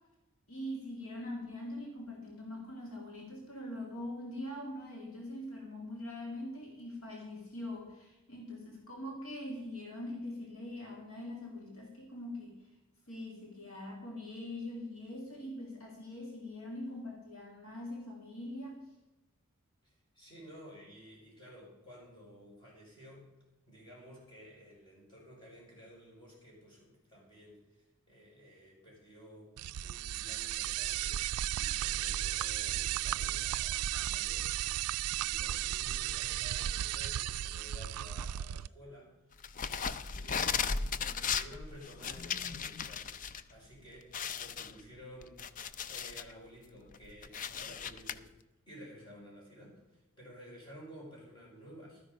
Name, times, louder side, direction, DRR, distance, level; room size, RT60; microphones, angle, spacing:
voice 1, 0.5-12.6 13.1-18.9, left 1 dB, 70° left, 0 dB, 2.3 m, -43 dB
voice 2, 19.8-23.3 23.7-29.5 29.8-34.8 35.1-39.1 39.7-45.4 45.8-48.3 48.7-52.0, equal, 20° left, -4 dB, 5.6 m, -54 dB
sound 1, 29.6-38.7, right 12 dB, 85° right, 0.3 m, -34 dB
sound 2, 39.4-43.4 43.7-43.8 44.1-46.3 46.8-48.1, left 6 dB, 35° left, 0.5 m, -36 dB
13.0 x 10.0 x 5.0 m, 1.0 s
head